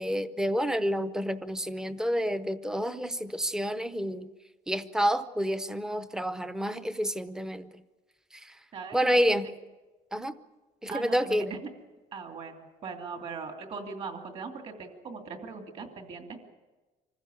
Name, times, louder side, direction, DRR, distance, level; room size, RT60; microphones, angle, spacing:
voice 1, 0.0-4.3 4.7-7.7 8.4-8.5 8.9-9.5 10.1-10.3 10.8-11.5, equal, 5° right, 12 dB, 0.7 m, -29 dB
voice 2, 8.7-9.3 10.9-11.7 12.1-12.6 12.8-16.5, right 5 dB, 40° right, 4 dB, 2.7 m, -40 dB
25.5 x 15.0 x 8.5 m, 1.2 s
cardioid pair, 155°, 15 cm